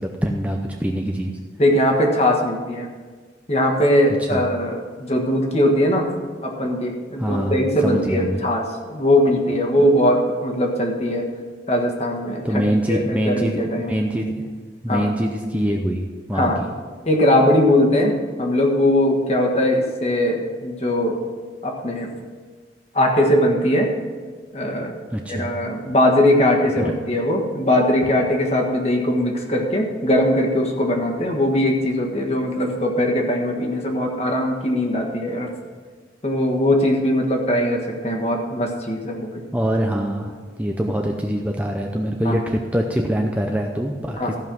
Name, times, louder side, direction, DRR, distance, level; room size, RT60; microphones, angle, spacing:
voice 1, 0.0-1.3 4.3-4.4 7.2-7.6 7.8-8.4 12.4-14.5 14.8-16.0 16.3-16.5 25.1-25.5 26.8-26.9 39.5-44.3, equal, 10° right, 1 dB, 0.6 m, -24 dB
voice 2, 1.6-2.9 3.5-6.1 6.4-11.3 11.7-12.6 12.9-14.0 14.9-15.1 16.3-16.6 17.0-21.2 21.6-22.1 22.9-23.9 24.5-25.0 25.3-35.5 36.2-39.4 42.2-42.4 44.2-44.4, left 1 dB, 35° left, 1 dB, 1.5 m, -20 dB
14.5 x 5.6 x 6.1 m, 1.5 s
head